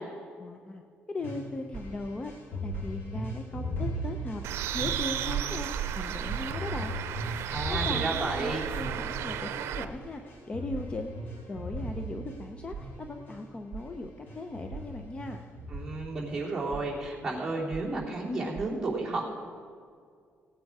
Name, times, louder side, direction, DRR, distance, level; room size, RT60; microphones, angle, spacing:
voice 1, 0.4-0.8 1.1-2.3 2.6-4.4 4.7-5.7 6.0-6.9 7.7-10.2 10.5-11.2 11.5-15.4, left 2 dB, 25° left, 5 dB, 0.6 m, -38 dB
sound 1, 1.2-13.4 13.8-14.0 14.3-16.4 16.8-17.3 17.8-17.9, equal, 55° left, 3.6 m, -39 dB
sound 2, 1.7-2.1 2.7-3.1 3.7-4.1 4.7-5.1 5.7-6.1 6.7-7.1 7.7-8.1 8.7-9.1 9.7-10.1 10.7-11.1 11.7-12.1 12.7-13.1 13.7-14.1 14.7-15.1 15.7-16.1 16.7-17.1 17.7-18.1 18.5-18.7, right 9 dB, 45° right, 0.7 m, -42 dB
Bird, 4.4-9.8, right 10 dB, 90° right, 0.5 m, -33 dB
voice 2, 7.5-8.6 15.7-19.2, right 2 dB, 10° right, -6 dB, 3.3 m, -32 dB
16.5 x 9.1 x 4.8 m, 2.1 s
cardioid pair, 135°, 4 cm